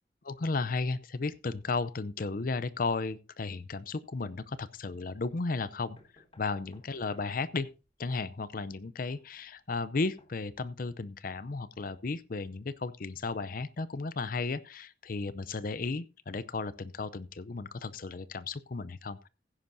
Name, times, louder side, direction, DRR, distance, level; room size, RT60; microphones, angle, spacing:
voice 1, 0.3-7.7 8.0-19.3, left 3 dB, 45° left, 0.5 m, -34 dB
sound 1, 5.8-10.8, left 1 dB, 30° left, 1.9 m, -62 dB
16.0 x 9.9 x 2.6 m
head